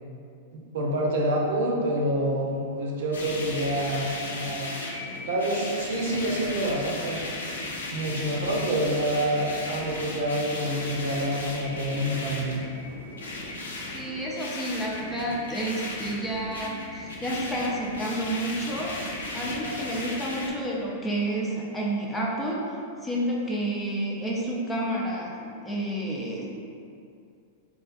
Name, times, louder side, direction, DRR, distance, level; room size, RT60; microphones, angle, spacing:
voice 1, 0.5-4.7 5.3-7.2 7.9-12.6, right 1 dB, 65° right, -2 dB, 0.6 m, -27 dB
sound 1, 3.1-20.5, left 2 dB, 85° left, 0.4 m, -36 dB
voice 2, 13.9-26.5, right 1 dB, 10° left, -4 dB, 0.6 m, -30 dB
4.2 x 2.3 x 2.4 m, 2.5 s
hypercardioid pair, 105°, 0 cm